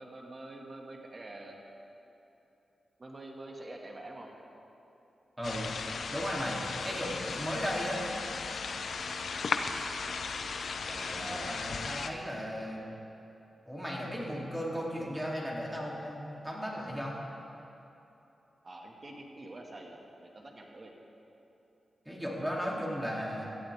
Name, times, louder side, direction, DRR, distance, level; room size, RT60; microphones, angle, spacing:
voice 1, 0.0-1.6 3.0-4.3 10.9-11.6 18.6-20.0 20.3-20.9, right 2 dB, 40° right, 0 dB, 2.1 m, -45 dB
sound 1, 5.4-12.1, left 4 dB, 75° left, 0.7 m, -36 dB
voice 2, 6.1-8.0 11.0-12.8 13.6-17.2 22.0-23.5, equal, 5° right, -3 dB, 3.3 m, -36 dB
18.0 x 14.0 x 3.7 m, 2.9 s
cardioid pair, 65°, 0 cm